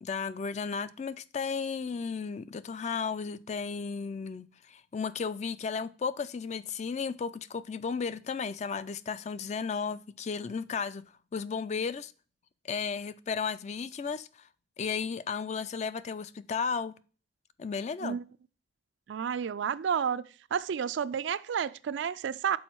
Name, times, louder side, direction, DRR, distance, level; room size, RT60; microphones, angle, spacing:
voice 1, 0.0-12.1 12.6-14.5 14.8-16.9 17.6-18.2, left 5 dB, 35° left, 0.3 m, -34 dB
voice 2, 19.1-20.2 20.5-22.6, right 7 dB, 70° right, 0.3 m, -30 dB
6.3 x 4.3 x 4.5 m
head